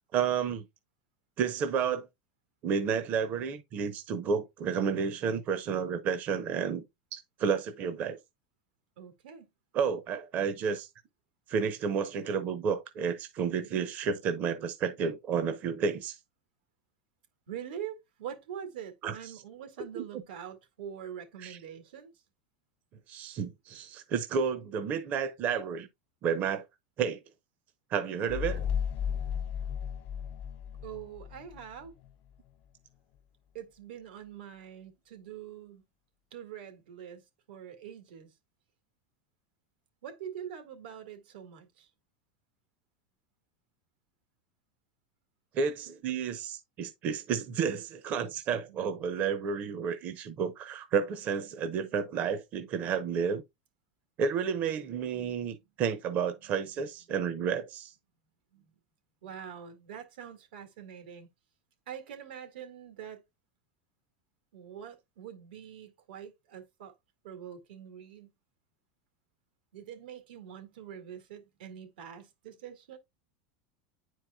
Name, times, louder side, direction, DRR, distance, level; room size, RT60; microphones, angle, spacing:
voice 1, 0.1-0.6 1.4-2.1 2.6-6.8 7.1-8.2 9.7-10.9 11.5-16.2 19.0-19.4 19.9-20.0 21.4-21.6 23.1-25.9 26.2-26.6 27.0-27.2 27.9-28.7 45.5-53.4 54.2-57.9, right 6 dB, 35° right, 0.7 m, -31 dB
voice 2, 9.0-9.5 17.5-22.1 30.8-31.9 33.5-35.8 36.3-38.3 40.0-41.9 48.5-48.8 56.5-56.6 58.5-58.6 59.2-61.3 61.9-63.2 64.5-66.9 67.2-68.3 69.7-73.0, right 9 dB, 85° right, 2.0 m, -44 dB
sound 1, 28.3-31.6, left 8 dB, 40° left, 0.5 m, -34 dB
9.6 x 4.6 x 2.3 m
supercardioid pair, 155°, 5 cm